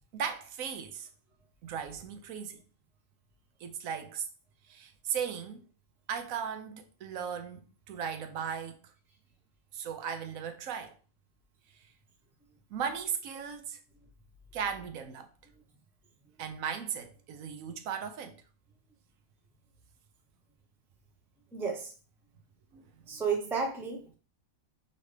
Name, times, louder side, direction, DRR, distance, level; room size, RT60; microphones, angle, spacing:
voice 1, 0.1-1.1 1.6-2.6 3.6-4.3 4.7-5.6 6.1-7.6 7.9-8.8 9.7-10.9 12.7-13.8 14.5-15.3 16.4-18.4 22.7-22.8, right 7 dB, 80° right, 1.1 m, -36 dB
voice 2, 21.5-21.9 23.1-24.2, right 5 dB, 5° right, 0.5 m, -32 dB
5.3 x 2.6 x 3.2 m
omnidirectional pair, 1.4 m